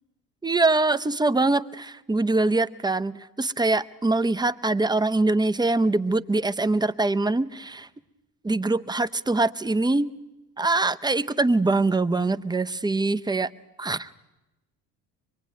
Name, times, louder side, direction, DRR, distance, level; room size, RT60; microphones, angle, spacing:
voice 1, 0.4-7.9 8.4-10.1 10.6-13.5 13.8-14.1, right 2 dB, 10° right, 12 dB, 0.8 m, -23 dB
24.5 x 21.5 x 9.4 m, 1.0 s
hypercardioid pair, 60°, 47 cm